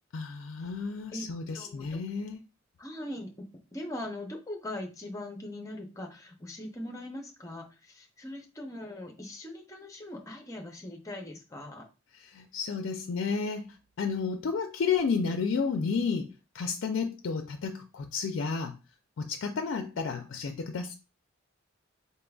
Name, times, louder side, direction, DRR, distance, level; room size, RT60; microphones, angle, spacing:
voice 1, 0.1-2.4 12.3-18.8 19.2-20.9, left 5 dB, 65° left, 0.4 m, -31 dB
voice 2, 1.5-2.0 2.8-3.4 3.7-11.9, left 1 dB, 15° left, 0.7 m, -41 dB
4.0 x 3.7 x 2.3 m
head